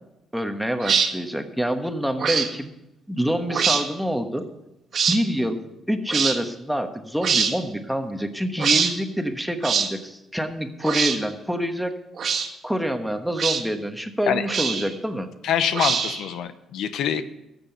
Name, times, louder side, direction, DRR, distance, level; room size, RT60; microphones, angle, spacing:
voice 1, 0.3-2.7 3.1-4.4 5.1-5.6 5.9-12.0 12.6-15.3, equal, ahead, 6 dB, 1.2 m, -26 dB
sound 1, 0.8-1.1 2.2-2.5 3.5-3.8 4.9-5.2 6.1-6.4 7.2-7.5 8.6-8.9 9.6-9.9 10.8-11.2 12.2-12.5 13.4-13.6 14.5-14.9 15.7-16.3, right 6 dB, 60° right, 1.6 m, -23 dB
voice 2, 15.4-17.2, left 9 dB, 80° left, 11 dB, 0.7 m, -25 dB
14.0 x 6.9 x 6.8 m, 0.90 s
cardioid pair, 90°, 0 cm